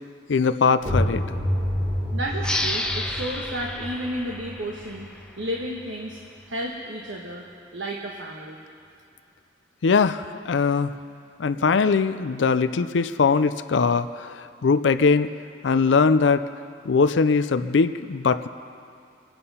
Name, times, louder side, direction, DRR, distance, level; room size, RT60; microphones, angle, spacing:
voice 1, 0.3-1.2 9.8-10.9 11.4-15.3 15.6-16.4 16.8-18.5, left 5 dB, 75° left, 12 dB, 0.5 m, -21 dB
sound 1, 0.8-6.3, equal, 25° right, 3.7 m, -29 dB
voice 2, 2.1-6.2 6.5-7.4 7.7-8.6, equal, 80° right, -1 dB, 1.3 m, -32 dB
sound 2, 2.4-5.7, left 1 dB, 5° left, 0.8 m, -31 dB
25.5 x 8.8 x 5.6 m, 2.5 s
head